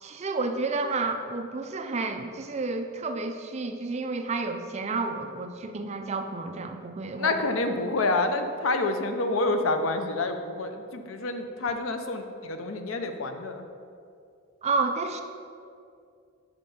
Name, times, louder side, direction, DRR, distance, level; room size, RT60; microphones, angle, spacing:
voice 1, 0.0-7.4 14.6-15.2, right 3 dB, 30° right, 6 dB, 0.4 m, -30 dB
voice 2, 7.2-13.7, left 2 dB, 75° left, 7 dB, 0.6 m, -28 dB
5.8 x 5.1 x 5.2 m, 2.3 s
head